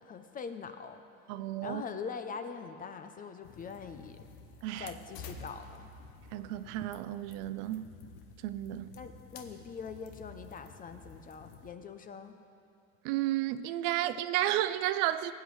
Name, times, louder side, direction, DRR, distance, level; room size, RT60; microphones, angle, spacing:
voice 1, 0.0-1.0 1.6-4.2 4.8-5.9 9.0-12.4, left 6 dB, 25° left, 8 dB, 0.4 m, -43 dB
voice 2, 1.3-1.8 4.6-4.9 6.3-7.9 8.4-8.9 13.0-15.3, right 13 dB, 70° right, 13 dB, 0.5 m, -32 dB
sound 1, 3.4-11.7, left 4 dB, 75° left, 1.1 m, -51 dB
20.0 x 8.5 x 3.1 m, 2.9 s
cardioid pair, 135°, 38 cm